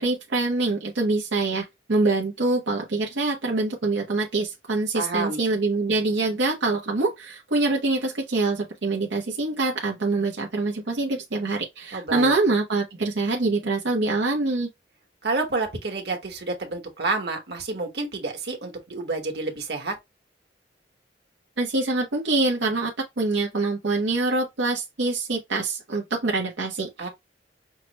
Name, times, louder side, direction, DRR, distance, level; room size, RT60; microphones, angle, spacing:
voice 1, 0.0-14.7 21.6-22.9 23.2-27.1, right 3 dB, 90° right, 0.8 m, -25 dB
voice 2, 4.9-5.4 11.9-12.3 15.2-20.0 27.0-27.1, right 3 dB, 65° right, 1.3 m, -29 dB
5.7 x 2.1 x 2.9 m
head